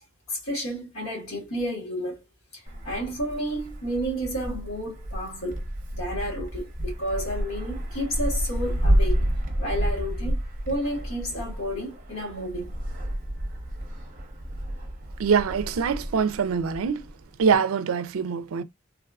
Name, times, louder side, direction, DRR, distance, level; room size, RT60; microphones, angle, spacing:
voice 1, 0.3-2.2 2.5-9.3 9.6-12.7, equal, 85° left, 1.5 m, -31 dB
Wind, 2.7-17.6, equal, 40° right, 0.8 m, -30 dB
voice 2, 15.2-17.0 17.4-18.6, right 6 dB, 85° right, 0.4 m, -24 dB
3.4 x 2.4 x 2.3 m
head